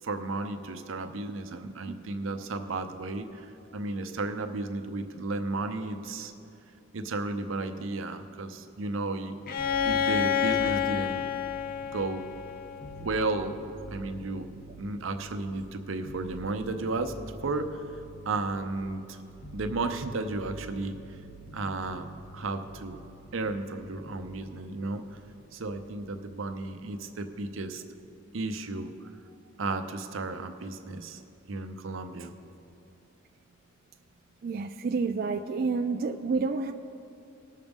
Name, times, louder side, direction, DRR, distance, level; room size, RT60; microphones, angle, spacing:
voice 1, 0.0-6.3 6.9-9.6 9.8-11.3 11.9-12.2 12.9-13.5 13.9-14.5 14.8-17.2 17.4-17.8 18.3-19.2 19.5-21.2 21.5-22.1 22.3-23.0 23.3-25.2 25.5-27.8 28.3-29.1 29.6-31.2 31.5-32.3, right 3 dB, 85° right, 7 dB, 0.7 m, -33 dB
Bowed string instrument, 9.5-13.2, left 8 dB, 45° left, 0.5 m, -29 dB
sound 1, 9.6-27.0 27.3-28.1, right 1 dB, 70° left, 0.8 m, -47 dB
voice 2, 34.4-36.7, right 4 dB, 45° right, 6 dB, 0.3 m, -29 dB
19.0 x 6.5 x 3.6 m, 2.7 s
head